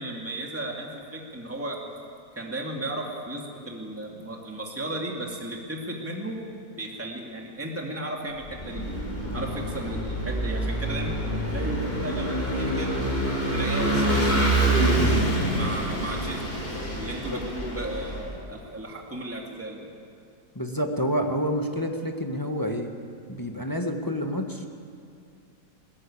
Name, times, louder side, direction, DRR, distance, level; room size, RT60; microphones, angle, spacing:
voice 1, 0.0-1.8 2.4-6.4 6.8-8.8 9.3-13.1 13.5-14.9 15.5-16.5 16.9-19.8, right 1 dB, 10° right, 0 dB, 2.4 m, -35 dB
Vehicle / Engine, 8.4-18.3, right 1 dB, 35° left, 5.0 m, -26 dB
voice 2, 20.5-22.9 23.3-24.7, equal, 15° left, 3 dB, 1.4 m, -28 dB
20.5 x 20.5 x 8.7 m, 2.4 s
omnidirectional pair, 1.8 m